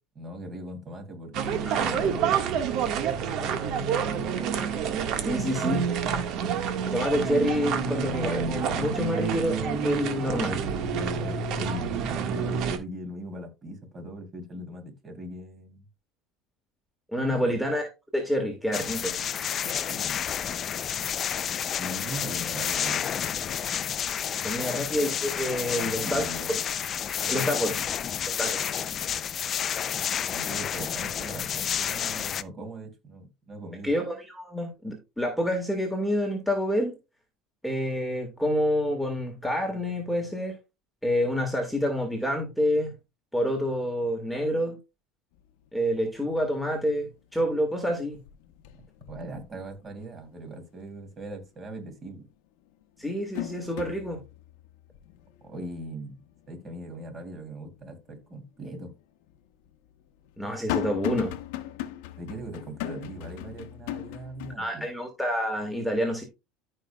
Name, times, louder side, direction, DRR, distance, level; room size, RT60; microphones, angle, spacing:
voice 1, 0.1-2.9 3.3-4.3 10.9-15.9 17.2-17.5 19.2-19.3 19.6-20.1 21.8-23.2 24.3-24.8 25.7-26.5 27.2-27.5 30.3-33.9 48.7-52.3 55.4-56.2 56.5-59.0 62.2-64.9, right 1 dB, 30° right, 3.1 m, -40 dB
sound 1, 1.3-12.8, right 7 dB, 55° right, 1.7 m, -28 dB
voice 2, 1.7-2.0 5.2-5.9 6.9-10.7 17.1-19.2 24.4-26.2 27.3-27.7 28.4-28.6 33.8-36.9 37.6-40.6 41.0-42.9 43.3-44.8 45.7-48.2 53.0-54.2 60.4-61.4 64.6-66.2, equal, ahead, 1.9 m, -28 dB
sound 2, 18.7-32.4, left 9 dB, 35° left, 0.5 m, -30 dB
sound 3, 45.4-45.5 45.9-46.4 46.8-47.6 47.9-50.1 50.5-50.6 52.1-52.2 52.7-57.8 58.2-58.3 59.2-64.6, left 13 dB, 80° left, 1.0 m, -38 dB
14.5 x 5.4 x 2.3 m
supercardioid pair, 135°, 0 cm